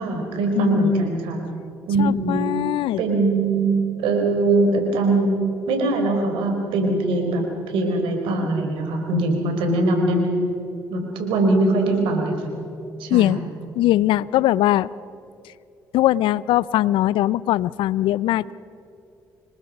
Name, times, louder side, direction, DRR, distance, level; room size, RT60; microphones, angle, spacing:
voice 1, 0.0-1.4 1.9-2.5 3.0-3.7 4.0-5.4 5.7-10.3 10.9-12.4 13.0-13.4, right 2 dB, 80° right, 3 dB, 4.3 m, -21 dB
voice 2, 0.6-1.1 2.0-3.0 13.1-13.4 13.8-14.9 15.9-18.5, left 14 dB, 75° left, 21 dB, 0.5 m, -20 dB
27.0 x 21.0 x 5.3 m, 2.8 s
supercardioid pair, 60°, 9 cm